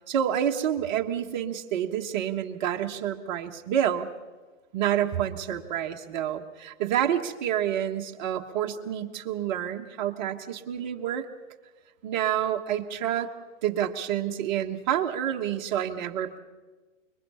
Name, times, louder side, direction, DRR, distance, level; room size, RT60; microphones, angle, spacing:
voice 1, 0.0-4.1 4.7-11.3 12.0-13.3 13.6-16.4, right 10 dB, 35° right, 3 dB, 1.4 m, -28 dB
25.5 x 23.0 x 5.7 m, 1.3 s
hypercardioid pair, 150°, 38 cm